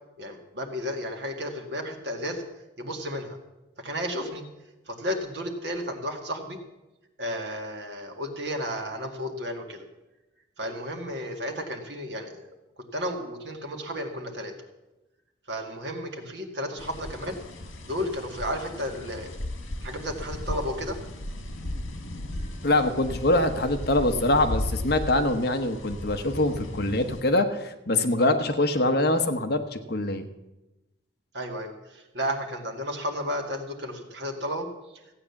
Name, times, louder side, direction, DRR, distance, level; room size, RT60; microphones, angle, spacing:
voice 1, 0.2-2.4 2.8-3.4 3.8-4.4 4.9-6.6 7.2-9.8 10.6-12.4 12.9-14.5 15.5-17.4 17.8-19.3 19.8-21.0 31.3-34.7, equal, 60° right, 2 dB, 2.0 m, -33 dB
sound 1, 16.8-27.2, left 1 dB, 80° left, 1.7 m, -36 dB
voice 2, 22.6-30.3, left 2 dB, 50° left, 7 dB, 1.0 m, -24 dB
15.0 x 8.8 x 7.1 m, 1.0 s
head